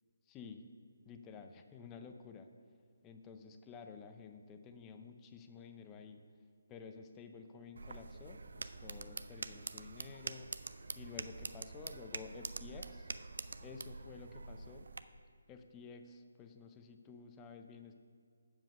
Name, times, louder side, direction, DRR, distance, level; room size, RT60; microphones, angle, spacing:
voice 1, 0.3-0.6 1.1-2.5 3.0-6.2 6.7-10.5 11.0-13.1 13.6-14.9 15.5-17.9, left 5 dB, 15° left, 6 dB, 0.6 m, -52 dB
sound 1, 7.8-15.0, right 3 dB, 65° right, 0.4 m, -46 dB
7.5 x 7.4 x 5.3 m, 2.1 s
figure-of-eight pair, 155°, 0 cm